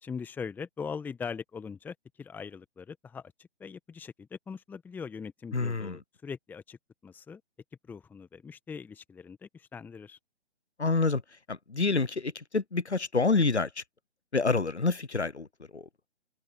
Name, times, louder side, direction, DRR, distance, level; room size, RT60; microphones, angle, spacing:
voice 1, 0.0-3.3 3.6-6.8 7.0-7.4 7.9-10.2, left 6 dB, 5° left, 1.4 m, -41 dB
voice 2, 5.5-6.0 10.8-11.2 11.5-13.8 14.3-15.5 15.7-15.9, left 3 dB, 90° left, 0.9 m, -27 dB
figure-of-eight pair, 135°, 33 cm